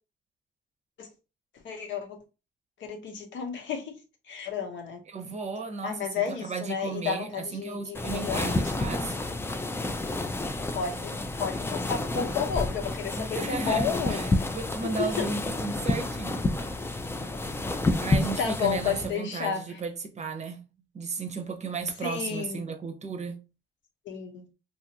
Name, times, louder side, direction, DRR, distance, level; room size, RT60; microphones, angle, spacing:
voice 1, 1.6-2.2 2.8-3.9 4.3-5.0 5.8-8.7 10.7-14.2 14.8-15.3 18.4-19.8 22.0-22.6 24.1-24.5, left 7 dB, 70° left, 0.8 m, -32 dB
voice 2, 5.1-9.2 13.2-16.8 18.0-20.7 20.9-23.4, right 4 dB, 35° right, 0.7 m, -34 dB
sound 1, 7.9-19.1, left 2 dB, 10° left, 0.3 m, -30 dB
2.8 x 2.4 x 2.8 m
cardioid pair, 90°, 20 cm